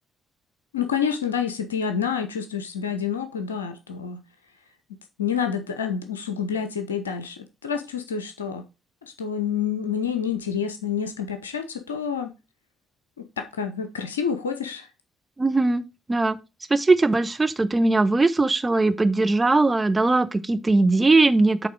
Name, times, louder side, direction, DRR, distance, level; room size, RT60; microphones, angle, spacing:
voice 1, 0.7-4.2 5.2-8.6 9.0-12.3 13.2-14.9, left 7 dB, 85° left, 0.6 m, -28 dB
voice 2, 15.4-15.8 16.1-16.4 16.7-21.7, right 3 dB, 20° right, 0.8 m, -20 dB
8.5 x 3.5 x 4.9 m
figure-of-eight pair, 45°, 0 cm